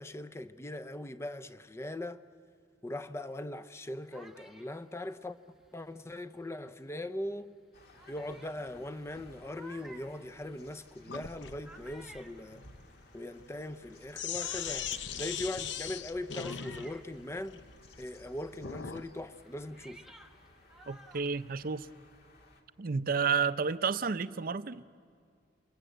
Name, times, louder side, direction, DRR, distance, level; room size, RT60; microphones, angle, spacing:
voice 1, 0.0-2.2 2.8-5.4 5.7-7.5 8.1-12.6 13.1-17.6 18.0-20.0, left 1 dB, 15° left, 0.6 m, -40 dB
sound 1, 3.6-6.7 7.3-7.4 7.9-18.0 18.2-22.0, right 1 dB, 5° right, 1.0 m, -57 dB
sound 2, 7.7-22.6, left 1 dB, 55° left, 2.3 m, -60 dB
Sink (filling or washing), 11.1-19.1, left 8 dB, 70° left, 0.8 m, -40 dB
voice 2, 20.9-21.9 22.8-24.8, right 5 dB, 50° right, 0.6 m, -31 dB
28.5 x 22.0 x 8.0 m
head